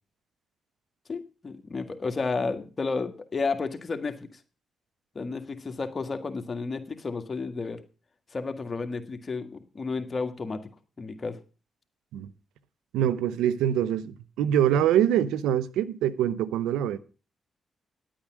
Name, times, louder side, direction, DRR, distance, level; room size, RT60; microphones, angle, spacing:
voice 1, 1.1-4.3 5.2-7.8 8.3-10.7 11.0-11.4, left 4 dB, 40° left, 1.8 m, -32 dB
voice 2, 12.9-17.0, right 10 dB, 90° right, 0.7 m, -24 dB
10.5 x 8.7 x 6.3 m
supercardioid pair, 55°, 0 cm